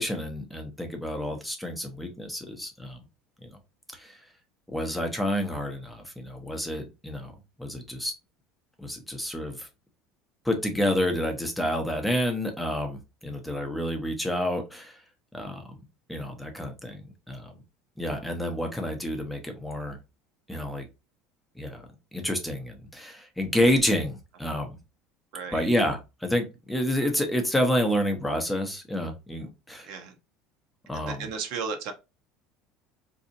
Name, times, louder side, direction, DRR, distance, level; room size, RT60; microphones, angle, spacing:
voice 1, 0.0-3.0 3.4-3.6 3.9-4.2 4.7-7.3 7.6-8.1 8.8-9.7 10.4-15.0 15.3-15.6 16.1-17.6 18.0-20.0 20.5-20.9 21.6-21.8 22.1-24.8 25.5-29.9 30.9-31.3, equal, 5° left, 0.7 m, -29 dB
voice 2, 29.8-30.2 30.9-31.9, right 5 dB, 60° right, 0.7 m, -34 dB
4.1 x 2.7 x 2.5 m
cardioid pair, 150°, 0 cm